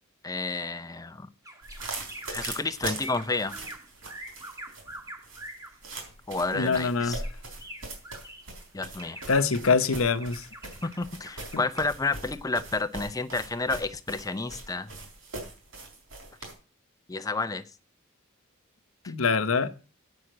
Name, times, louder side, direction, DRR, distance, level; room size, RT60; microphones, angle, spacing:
voice 1, 0.2-1.3 2.3-3.5 6.3-7.2 8.7-9.2 10.8-14.9 17.1-17.6, left 3 dB, 15° left, 0.6 m, -30 dB
sound 1, 1.4-5.8 6.5-8.6 9.0-11.8, right 1 dB, 15° right, 1.6 m, -45 dB
sound 2, 1.6-16.5, right 2 dB, 70° right, 3.9 m, -41 dB
voice 2, 6.5-7.2 9.3-10.4 19.1-19.7, left 4 dB, 80° left, 0.9 m, -24 dB
8.5 x 6.3 x 7.7 m
head